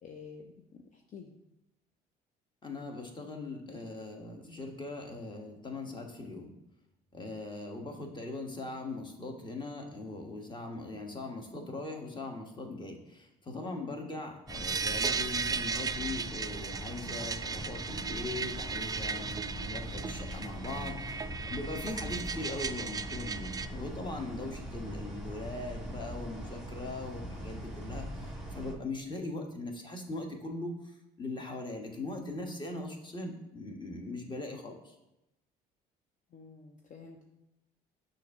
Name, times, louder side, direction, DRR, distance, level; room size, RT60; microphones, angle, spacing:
voice 1, 0.0-1.3 36.3-37.2, left 5 dB, 45° left, 2 dB, 0.7 m, -49 dB
voice 2, 2.6-6.5 7.1-34.9, left 2 dB, 25° left, 3 dB, 1.3 m, -40 dB
sound 1, 14.5-28.7, equal, ahead, 1.5 m, -42 dB
sound 2, 14.5-23.7, right 5 dB, 20° right, 0.3 m, -36 dB
6.4 x 2.8 x 5.4 m, 0.90 s
hypercardioid pair, 65°, 19 cm